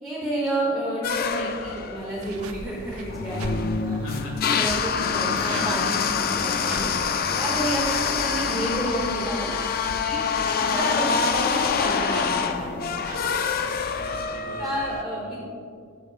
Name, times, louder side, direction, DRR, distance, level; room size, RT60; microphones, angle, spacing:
voice 1, 0.0-4.0 4.5-6.9 7.3-9.5 10.0-13.0 14.6-15.4, right 1 dB, ahead, -8 dB, 1.0 m, -30 dB
sound 1, 1.0-15.0, left 6 dB, 45° left, 0.4 m, -26 dB
sound 2, 2.1-14.2, right 2 dB, 90° right, 0.5 m, -41 dB
voice 2, 4.0-4.5 13.9-15.5, equal, 85° left, -3 dB, 1.9 m, -40 dB
sound 3, 5.4-6.7, right 5 dB, 40° right, 0.7 m, -49 dB
12.0 x 5.2 x 2.4 m, 2.2 s
head